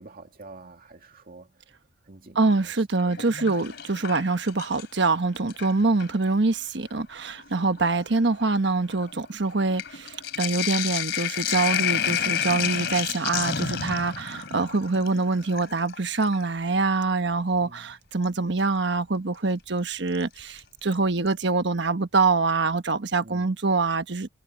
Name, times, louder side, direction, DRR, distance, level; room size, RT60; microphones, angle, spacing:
voice 1, 0.0-1.6 2.1-2.7 3.0-3.2 5.8-5.9 7.6-7.7 17.6-17.9 23.2-23.5, right 2 dB, 50° right, 2.3 m, -47 dB
voice 2, 2.3-24.3, right 3 dB, 65° right, 1.2 m, -25 dB
Sink (filling or washing), 3.0-5.0 5.4-6.2 7.0-7.1 7.4-16.5 18.2-18.3 20.1-20.6 20.9-21.0 21.3-21.4, left 9 dB, 65° left, 3.3 m, -31 dB
head